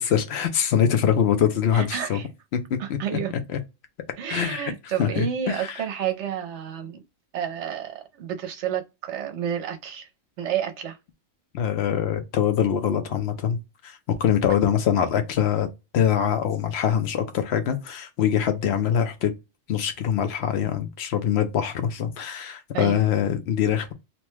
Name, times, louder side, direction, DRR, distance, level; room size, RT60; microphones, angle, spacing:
voice 1, 0.0-2.2 2.5-3.2 3.5-3.6 4.3-5.8 11.5-13.6 13.8-19.3 19.7-23.9, left 8 dB, 65° left, 0.7 m, -24 dB
voice 2, 1.7-2.3 2.8-3.3 4.2-7.0 7.3-10.1 10.4-11.0 22.7-23.1, right 9 dB, 65° right, 0.9 m, -30 dB
2.9 x 2.2 x 3.0 m
omnidirectional pair, 1.4 m